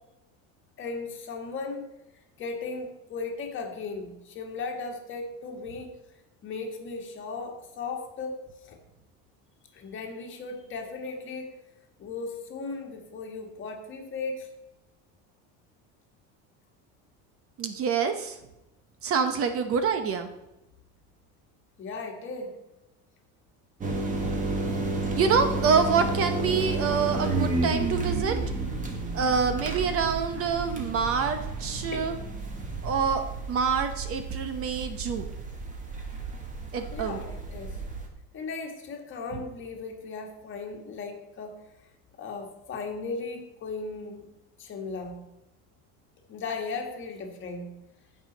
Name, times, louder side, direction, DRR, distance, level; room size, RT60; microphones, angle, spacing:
voice 1, 0.8-1.9 2.4-6.0 6.4-8.8 9.7-11.6 12.0-14.5 21.8-22.6 31.9-32.1 36.9-37.8 38.3-41.6 42.2-44.3 44.6-45.2 46.3-47.7, left 4 dB, 35° left, 3 dB, 1.7 m, -36 dB
voice 2, 17.6-18.4 19.0-20.3 25.1-28.3 29.1-32.2 32.8-33.2 33.5-35.3 36.7-37.2, right 6 dB, 40° right, 8 dB, 0.9 m, -26 dB
sound 1, 23.8-38.1, right 3 dB, 20° right, 1.5 m, -31 dB
15.5 x 5.6 x 4.0 m, 0.95 s
cardioid pair, 155°, 35 cm